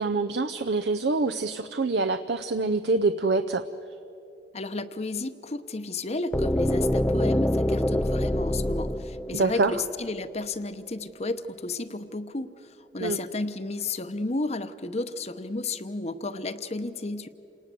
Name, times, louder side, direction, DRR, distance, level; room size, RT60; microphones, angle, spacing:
voice 1, 0.0-3.6 9.3-9.7 13.0-13.2, right 3 dB, 70° right, 8 dB, 0.6 m, -25 dB
voice 2, 4.5-17.3, left 2 dB, 35° left, 12 dB, 0.9 m, -32 dB
sound 1, 6.3-10.2, left 1 dB, 10° left, 0.5 m, -26 dB
28.0 x 19.5 x 7.7 m, 2.8 s
head